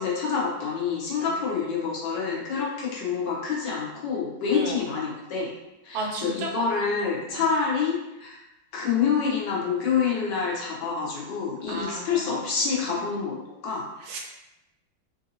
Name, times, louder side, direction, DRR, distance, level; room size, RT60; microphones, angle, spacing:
voice 1, 0.0-5.6 5.8-8.4 8.7-13.9, left 5 dB, 65° left, -4 dB, 1.3 m, -27 dB
voice 2, 5.9-6.5 7.3-7.4 11.7-12.9 14.0-14.2, right 3 dB, 80° right, 0 dB, 1.5 m, -35 dB
3.9 x 2.6 x 2.6 m, 0.92 s
omnidirectional pair, 2.3 m